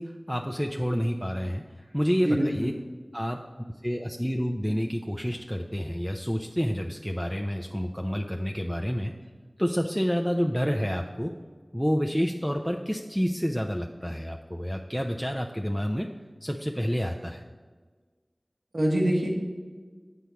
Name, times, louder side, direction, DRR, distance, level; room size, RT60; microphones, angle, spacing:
voice 1, 0.0-2.7 3.1-3.4 3.8-9.1 9.6-11.3 11.7-16.1 16.4-17.4, equal, ahead, 3 dB, 0.5 m, -29 dB
voice 2, 2.3-2.7 18.7-19.3, right 1 dB, 85° right, -1 dB, 1.5 m, -24 dB
8.2 x 4.5 x 6.9 m, 1.5 s
wide cardioid pair, 45°, 0 cm